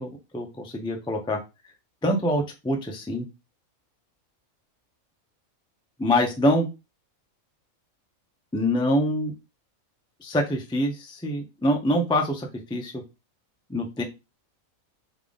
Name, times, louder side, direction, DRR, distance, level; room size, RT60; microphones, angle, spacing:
voice 1, 0.0-1.4 2.0-3.3 6.0-6.7 8.5-9.3 10.2-12.9 13.7-14.0, left 1 dB, 5° left, 2 dB, 0.4 m, -25 dB
3.6 x 3.3 x 3.8 m, 0.26 s
omnidirectional pair, 1.5 m